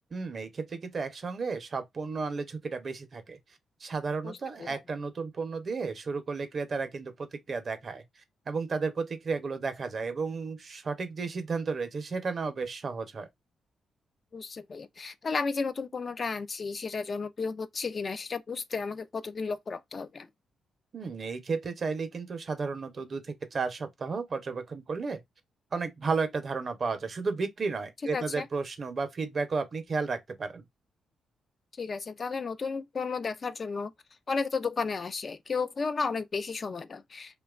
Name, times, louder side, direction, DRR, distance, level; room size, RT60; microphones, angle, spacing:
voice 1, 0.1-3.4 3.8-8.0 8.5-13.3 20.9-25.2 25.7-30.6, right 4 dB, 50° right, 0.6 m, -33 dB
voice 2, 4.2-4.8 14.3-20.3 28.1-28.5 31.8-33.9 34.3-37.4, left 4 dB, 45° left, 0.3 m, -33 dB
2.8 x 2.2 x 2.4 m
cardioid pair, 85°, 0 cm